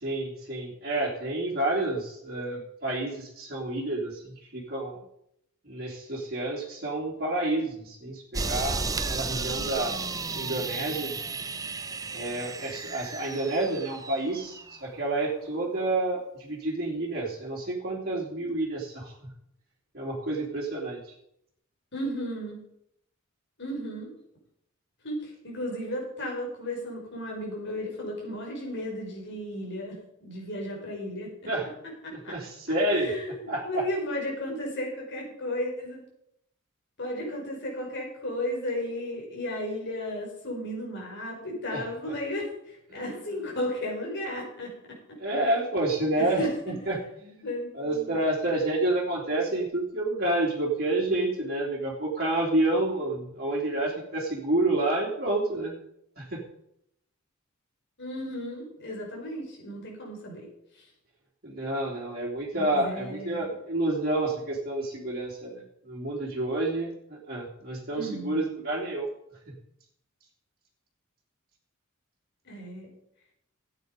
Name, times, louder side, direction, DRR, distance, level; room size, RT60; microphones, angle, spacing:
voice 1, 0.0-5.0 5.6-9.9 10.3-11.1 12.1-19.3 19.9-21.1 31.5-31.7 32.1-33.1 33.5-33.8 41.7-41.8 42.9-43.0 45.2-47.5 47.7-55.7 56.2-56.4 61.4-69.1 69.5-69.6, right 2 dB, 45° right, -4 dB, 3.0 m, -29 dB
sound 1, 8.3-14.8, right 4 dB, 15° right, 0.5 m, -33 dB
voice 2, 21.9-22.6 23.6-24.1 25.0-31.3 32.0-32.3 32.9-36.0 37.0-45.0 46.1-46.8 47.4-48.1 58.0-60.5 60.7-60.8 62.5-63.5 67.9-68.4 72.4-72.9, left 1 dB, 55° left, -1 dB, 4.9 m, -34 dB
14.0 x 9.1 x 5.2 m, 0.76 s
head